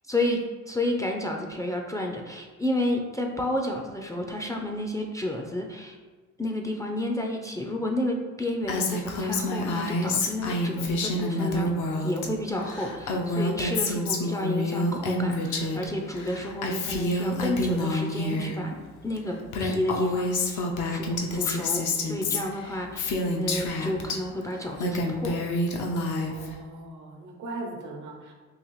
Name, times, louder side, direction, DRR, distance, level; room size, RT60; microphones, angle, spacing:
voice 1, 0.1-6.0 6.4-11.7 12.0-20.6 20.9-25.4, left 1 dB, 10° left, 1 dB, 0.3 m, -31 dB
Female speech woman speaking, 8.7-12.3 12.5-15.9 16.1-18.5 19.2-19.3 19.5-24.2 24.6-26.5, left 2 dB, 75° left, 0.6 m, -28 dB
voice 2, 26.3-28.3, right 2 dB, 80° right, 1 dB, 0.8 m, -39 dB
3.9 x 2.5 x 3.0 m, 1.4 s
cardioid pair, 90°, 30 cm